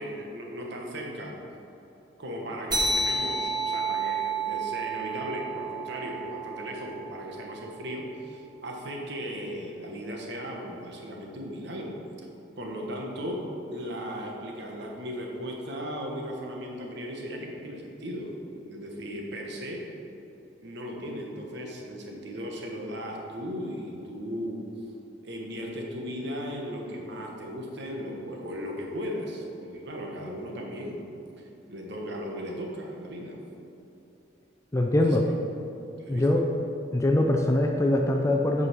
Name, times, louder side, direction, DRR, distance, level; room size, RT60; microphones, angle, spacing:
voice 1, 0.0-1.3 2.2-11.9 12.6-13.5 13.7-18.3 18.7-19.8 20.6-24.7 25.2-31.1 31.7-33.4 35.0-35.3 36.0-36.3, equal, 60° right, 0 dB, 1.3 m, -36 dB
sound 1, 2.7-7.6, right 3 dB, 20° right, 1.6 m, -31 dB
voice 2, 34.7-35.2 36.1-36.4 36.9-38.7, left 1 dB, 15° left, 1 dB, 0.5 m, -23 dB
8.4 x 5.5 x 6.1 m, 2.8 s
head